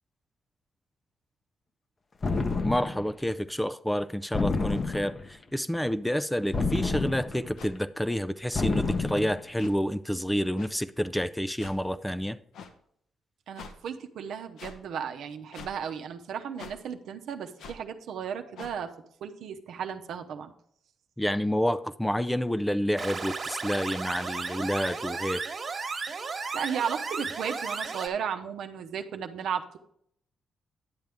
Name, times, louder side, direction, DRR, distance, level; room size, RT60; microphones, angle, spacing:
sound 1, 2.2-3.1 4.3-5.3 6.5-7.6 8.5-9.4, left 3 dB, 35° left, 0.7 m, -29 dB
voice 1, 2.6-12.4 21.2-25.4, equal, 5° left, 0.4 m, -29 dB
sound 2, 7.6-7.7 8.5-8.7 9.6-9.7 10.6-10.7 11.6-11.8 12.5-12.7 13.5-13.7 14.6-14.8 15.5-15.7 16.6-16.8 17.6-17.8 18.6-18.8, left 5 dB, 80° left, 0.9 m, -44 dB
voice 2, 13.5-18.9 19.2-20.5 26.5-29.8, right 7 dB, 75° right, 0.8 m, -35 dB
sound 3, 23.0-28.1, right 4 dB, 45° right, 1.4 m, -34 dB
10.5 x 7.6 x 3.5 m
cardioid pair, 90°, 0 cm